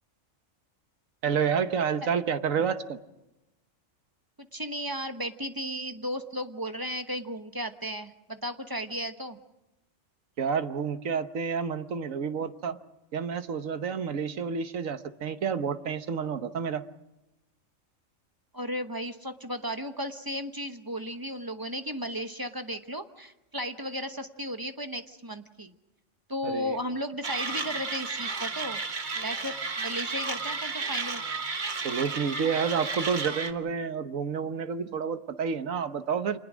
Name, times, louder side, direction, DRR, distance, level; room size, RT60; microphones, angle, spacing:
voice 1, 1.2-3.0 10.4-12.8 13.1-16.8 26.4-26.8 31.8-36.4, right 6 dB, 80° right, 10 dB, 1.5 m, -29 dB
voice 2, 4.4-9.4 18.5-25.7 26.3-28.8 29.1-31.2, equal, 20° right, 7 dB, 1.0 m, -35 dB
Mechanisms, 27.2-33.5, right 4 dB, 40° right, 1.3 m, -33 dB
27.5 x 20.5 x 6.2 m, 0.98 s
omnidirectional pair, 1.4 m